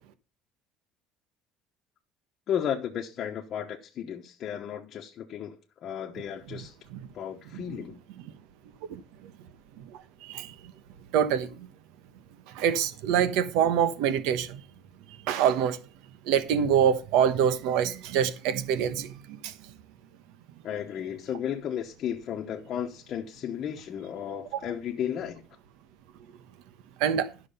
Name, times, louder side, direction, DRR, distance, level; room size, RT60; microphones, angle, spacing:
voice 1, 2.5-5.6 5.8-6.8 7.1-8.0 20.6-25.4, left 9 dB, 35° left, 1.0 m, -34 dB
voice 2, 7.5-7.8 8.9-9.3 9.8-10.7 11.1-11.7 12.5-14.6 15.3-15.8 16.2-19.5 27.0-27.3, right 8 dB, 80° right, 1.1 m, -26 dB
12.0 x 6.1 x 5.5 m
cardioid pair, 175°, 0 cm